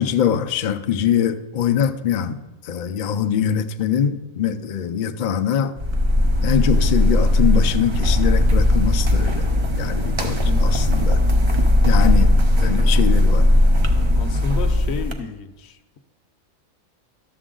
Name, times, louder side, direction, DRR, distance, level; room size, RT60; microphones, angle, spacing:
voice 1, 0.0-5.7 6.4-9.5 9.8-11.2 11.8-13.5, left 8 dB, 90° left, 0.4 m, -23 dB
sound 1, 5.8-15.1, left 1 dB, 45° right, 0.4 m, -17 dB
voice 2, 10.4-10.7 14.1-16.0, left 5 dB, 60° left, 0.8 m, -32 dB
12.0 x 7.1 x 3.8 m
omnidirectional pair, 1.5 m